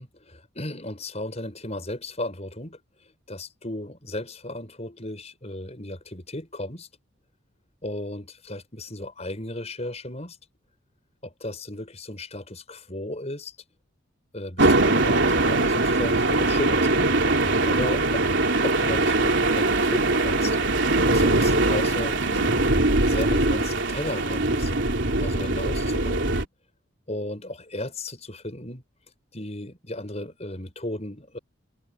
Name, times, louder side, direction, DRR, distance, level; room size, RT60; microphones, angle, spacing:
voice 1, 0.0-2.8 3.3-6.9 7.8-10.4 11.2-13.5 14.3-17.1 17.6-18.2 18.6-20.6 21.1-22.7 23.1-24.7 25.2-26.5 27.1-28.8 29.3-31.4, left 1 dB, 30° left, 6.3 m, -35 dB
sound 1, 14.6-26.4, right 2 dB, 60° right, 3.6 m, -22 dB
head